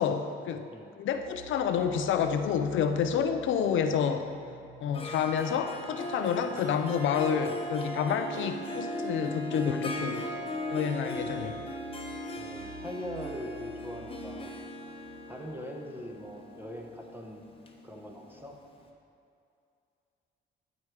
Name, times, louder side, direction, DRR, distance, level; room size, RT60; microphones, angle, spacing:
voice 1, 0.0-0.7 1.0-4.3 4.8-10.3 10.7-11.6, left 7 dB, 75° left, 8 dB, 0.6 m, -29 dB
sound 1, 1.1-16.7, right 7 dB, 65° right, 1.7 m, -52 dB
Harp, 4.9-18.5, equal, 25° left, 1.1 m, -38 dB
voice 2, 12.3-14.5 15.3-17.4 17.8-18.6, equal, 10° right, 0 dB, 1.2 m, -41 dB
12.5 x 5.0 x 4.8 m, 2.5 s
cardioid pair, 90°, 20 cm